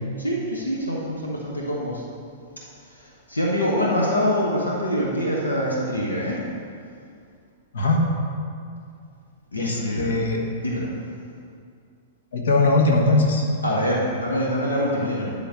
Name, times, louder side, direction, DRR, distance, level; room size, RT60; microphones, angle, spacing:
voice 1, 0.2-2.0 3.0-6.4 9.5-10.1 10.6-10.9 13.6-15.3, equal, 85° left, -3 dB, 1.1 m, -25 dB
voice 2, 7.7-8.2 9.6-10.4 12.3-13.4, left 2 dB, 65° left, 0 dB, 1.4 m, -20 dB
11.5 x 3.9 x 6.3 m, 2.3 s
figure-of-eight pair, 105°, 0 cm